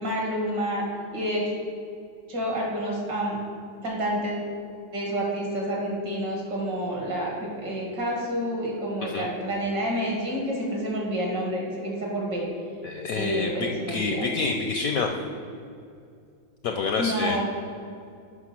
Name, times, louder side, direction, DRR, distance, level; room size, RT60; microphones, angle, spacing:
voice 1, 0.0-0.8 1.1-1.4 2.3-3.4 3.8-4.5 4.9-12.5 13.1-14.2 17.0-17.4, equal, 65° right, -2 dB, 2.6 m, -29 dB
voice 2, 12.8-15.1 16.6-17.4, left 4 dB, 70° left, 3 dB, 0.8 m, -27 dB
7.9 x 6.0 x 5.9 m, 2.5 s
omnidirectional pair, 2.0 m